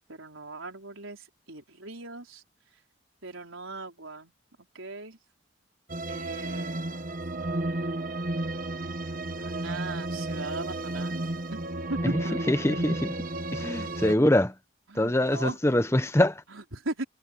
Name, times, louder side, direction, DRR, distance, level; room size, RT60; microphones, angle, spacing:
voice 1, 0.0-2.4 3.2-4.3 4.7-5.2 6.1-7.2 9.3-11.2 11.5-12.6 14.9-15.8 16.5-17.0, right 2 dB, 85° right, 4.5 m, -38 dB
sound 1, 5.9-14.1, right 1 dB, 45° right, 1.3 m, -32 dB
voice 2, 12.5-13.2 13.5-14.5 15.0-16.4, left 1 dB, 15° left, 0.9 m, -24 dB
head